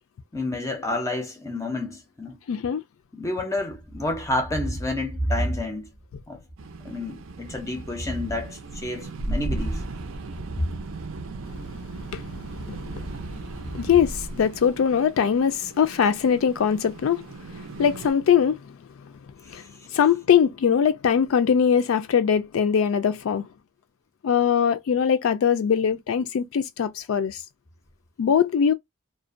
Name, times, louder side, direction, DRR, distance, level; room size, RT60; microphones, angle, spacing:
voice 1, 0.3-2.4 3.1-5.9 6.3-6.4 6.8-9.8 19.4-19.5, left 2 dB, 15° left, 0.4 m, -30 dB
voice 2, 2.5-2.8 12.0-12.3 12.5-13.0 13.7-18.8 19.0-19.1 19.5-23.5 24.2-27.4 28.2-28.7, left 7 dB, 80° left, 0.4 m, -22 dB
Thunder, 3.7-6.1 6.4-11.3 12.3-15.0, right 1 dB, 25° right, 0.6 m, -35 dB
sound 1, 6.6-18.1, right 2 dB, 80° right, 0.5 m, -37 dB
2.5 x 2.2 x 2.4 m
head